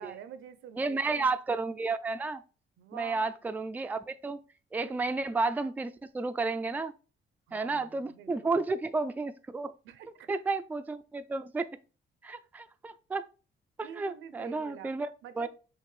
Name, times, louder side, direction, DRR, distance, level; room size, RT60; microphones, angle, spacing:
voice 1, 0.0-1.3 2.8-3.3 4.8-5.0 7.5-8.6 9.8-10.3 13.8-14.9 15.2-15.5, right 8 dB, 80° right, 0.6 m, -47 dB
voice 2, 0.8-2.4 2.9-4.4 4.7-6.9 7.5-9.7 10.3-11.7 12.2-13.2 13.8-15.1 15.4-15.5, right 3 dB, 10° right, 0.3 m, -32 dB
5.8 x 2.5 x 3.2 m
cardioid pair, 90°, 20 cm